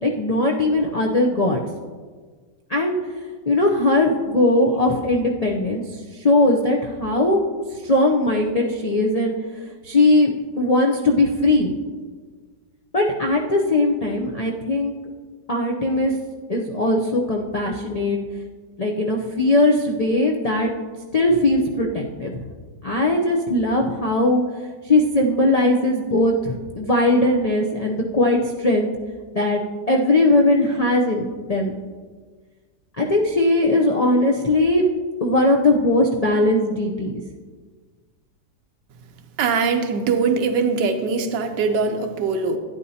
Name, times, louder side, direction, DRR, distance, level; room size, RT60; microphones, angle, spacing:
voice 1, 0.0-1.6 2.7-3.0 3.5-7.4 7.7-9.3 9.6-11.7 12.9-14.9 15.5-16.1 16.5-18.2 18.8-20.7 21.1-22.5 22.8-24.4 24.8-28.9 29.3-31.8 33.0-34.8 35.2-37.2, left 2 dB, 75° left, 0 dB, 0.3 m, -19 dB
voice 2, 39.4-42.6, right 5 dB, 90° right, 6 dB, 1.5 m, -22 dB
12.0 x 9.8 x 2.8 m, 1.5 s
omnidirectional pair, 1.8 m